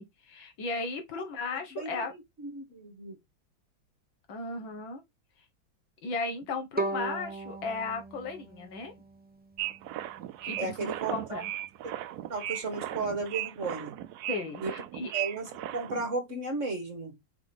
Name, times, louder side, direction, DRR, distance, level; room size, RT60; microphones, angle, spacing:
voice 1, 0.0-2.1 4.3-5.0 6.0-8.9 10.4-11.5 14.3-15.1, left 3 dB, 70° left, 2.1 m, -36 dB
voice 2, 2.4-3.2 10.6-11.4 12.3-13.9 14.6-14.7 15.1-15.5 15.7-17.2, right 3 dB, 40° right, 1.6 m, -34 dB
Bowed string instrument, 6.8-9.8, right 2 dB, 15° right, 0.3 m, -37 dB
sound 1, 9.6-16.1, right 13 dB, 80° right, 0.9 m, -37 dB
4.8 x 3.8 x 5.1 m
omnidirectional pair, 2.2 m